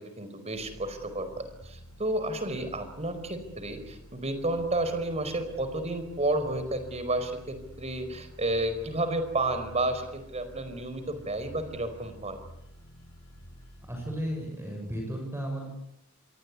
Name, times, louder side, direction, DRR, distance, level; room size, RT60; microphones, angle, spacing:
voice 1, 0.2-12.4, right 2 dB, 30° right, 10 dB, 4.8 m, -31 dB
sound 1, 0.5-14.3, equal, 75° left, 6.4 m, -50 dB
voice 2, 13.9-15.7, equal, 10° right, 1 dB, 6.9 m, -34 dB
27.5 x 23.0 x 8.5 m, 0.79 s
head